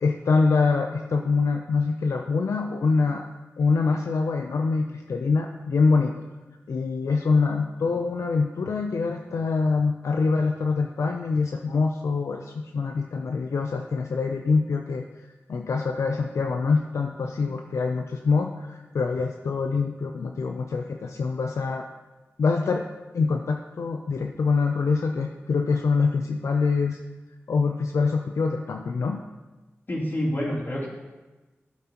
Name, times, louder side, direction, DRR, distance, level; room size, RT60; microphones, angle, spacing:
voice 1, 0.0-3.3 3.6-6.2 6.7-15.0 15.5-21.9 22.4-22.8 23.1-27.0 27.5-29.2, left 4 dB, 80° left, 3 dB, 0.5 m, -25 dB
voice 2, 29.9-30.9, equal, 45° left, -6 dB, 3.2 m, -27 dB
12.5 x 7.9 x 2.9 m, 1.2 s
cardioid pair, 55°, 5 cm